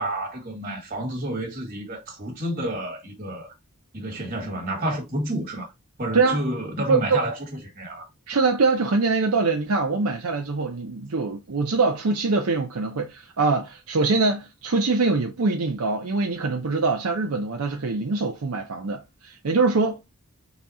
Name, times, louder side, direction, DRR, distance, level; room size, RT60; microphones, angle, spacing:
voice 1, 0.0-3.5 3.9-5.7 6.0-7.4 7.7-8.1, right 1 dB, 40° right, 1.8 m, -29 dB
voice 2, 6.9-7.2 8.3-20.0, right 3 dB, 75° right, 0.6 m, -23 dB
4.1 x 2.3 x 4.1 m
head